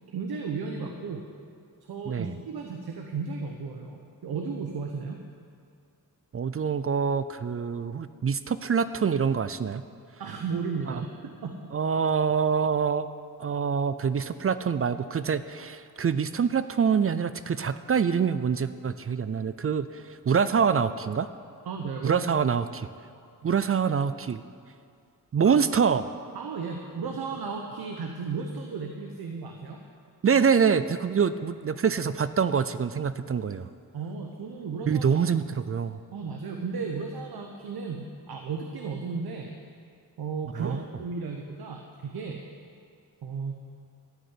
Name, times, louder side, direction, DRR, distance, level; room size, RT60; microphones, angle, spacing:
voice 1, 0.1-1.2 1.9-5.2 10.2-11.5 21.6-22.2 23.4-23.6 25.4-25.6 26.3-29.8 33.9-35.2 36.1-39.6 40.2-42.4 43.2-43.6, right 5 dB, 90° right, 3 dB, 1.1 m, -34 dB
voice 2, 6.3-9.8 10.9-11.0 11.7-13.1 13.4-21.3 22.0-22.9 23.4-24.4 25.3-26.0 30.2-33.7 34.9-36.0 40.6-40.8, right 6 dB, 40° right, 13 dB, 0.5 m, -25 dB
13.5 x 6.5 x 9.8 m, 2.3 s
wide cardioid pair, 90°, 36 cm